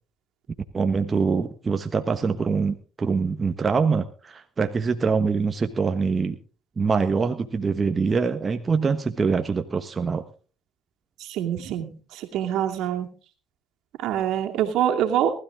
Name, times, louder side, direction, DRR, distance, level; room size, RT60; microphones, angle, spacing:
voice 1, 0.7-6.4 6.8-10.2, right 5 dB, 30° right, 6 dB, 1.2 m, -24 dB
voice 2, 11.2-13.1 14.0-15.3, right 10 dB, 70° right, 3 dB, 2.4 m, -25 dB
19.0 x 13.0 x 3.7 m, 0.38 s
supercardioid pair, 85°, 0 cm